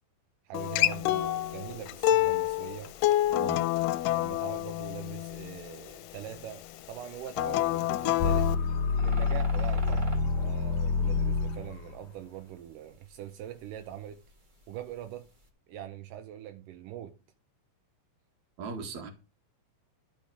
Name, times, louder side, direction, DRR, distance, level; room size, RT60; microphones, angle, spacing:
Acoustic guitar, 0.5-5.7 7.3-8.6, left 14 dB, 85° left, 2.2 m, -27 dB
voice 1, 0.5-2.9 4.1-8.5 8.9-14.2 14.7-15.3 15.7-17.2, right 11 dB, 85° right, 2.4 m, -43 dB
sound 1, 0.9-15.5, right 1 dB, 35° right, 0.7 m, -52 dB
voice 2, 3.3-3.7 18.6-19.1, right 5 dB, 60° right, 3.1 m, -38 dB
sound 2, 8.2-12.0, left 4 dB, 70° left, 2.8 m, -27 dB
12.0 x 5.9 x 5.0 m
omnidirectional pair, 3.8 m